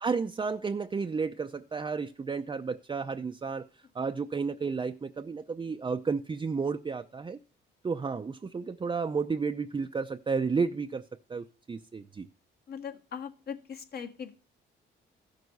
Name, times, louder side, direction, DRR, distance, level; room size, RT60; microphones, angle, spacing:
voice 1, 0.0-7.4 7.8-11.0 11.3-12.3, right 5 dB, 25° right, 0.6 m, -32 dB
voice 2, 12.7-14.3, left 7 dB, 50° left, 1.7 m, -40 dB
14.0 x 6.5 x 5.4 m
cardioid pair, 90°, 20 cm